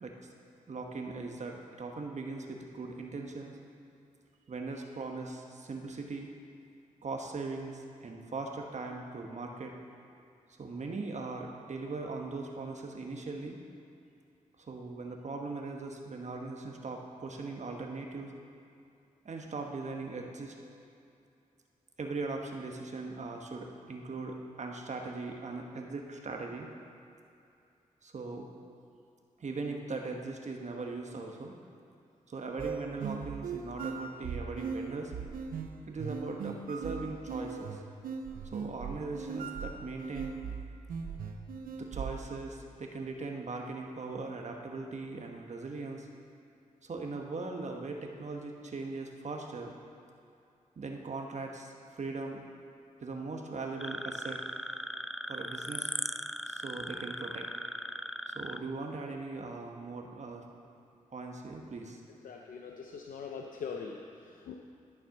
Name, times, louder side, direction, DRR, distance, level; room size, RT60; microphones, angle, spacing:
voice 1, 0.7-3.6 4.5-6.3 7.0-9.7 10.6-13.6 14.7-18.3 19.2-20.5 22.0-26.7 28.0-28.5 29.4-31.6 32.3-35.1 35.9-37.8 38.4-40.4 41.8-46.1 46.8-49.7 50.8-52.4 53.0-54.4 55.3-55.9 56.5-57.5 58.3-60.4 61.1-62.0, right 3 dB, 55° right, 2 dB, 1.1 m, -39 dB
sound 1, 32.6-42.3, right 5 dB, 85° right, 0.6 m, -39 dB
sound 2, 53.8-58.6, equal, ahead, 0.3 m, -38 dB
voice 2, 62.2-64.5, left 5 dB, 75° left, 1 dB, 0.6 m, -42 dB
12.0 x 4.3 x 6.3 m, 2.6 s
cardioid pair, 45°, 14 cm